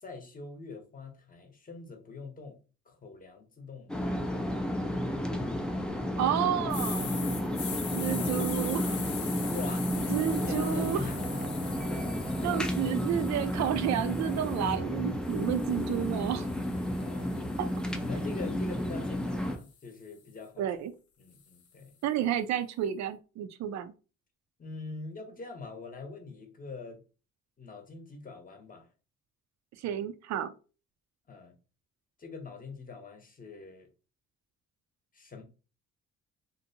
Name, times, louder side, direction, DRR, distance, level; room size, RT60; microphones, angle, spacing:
voice 1, 0.0-2.6 2.9-4.2 7.4-8.5 9.4-11.6 16.8-17.5 18.0-20.7 21.2-21.9 24.6-27.0 27.6-28.9 31.3-31.5 32.2-33.9 35.1-35.4, left 4 dB, 30° left, 0.8 m, -44 dB
sound 1, 3.9-19.6, left 1 dB, 5° left, 0.3 m, -32 dB
voice 2, 6.2-7.3 7.9-9.0 10.1-11.1 12.4-16.5 17.6-17.7 20.6-20.9 22.0-23.9 29.8-30.5, right 10 dB, 65° right, 0.4 m, -31 dB
sound 2, 6.7-14.8 15.3-19.5, left 6 dB, 75° left, 0.8 m, -43 dB
Singing / Musical instrument, 8.5-17.6, right 2 dB, 10° right, 0.7 m, -45 dB
2.6 x 2.1 x 2.7 m
cardioid pair, 90°, 30 cm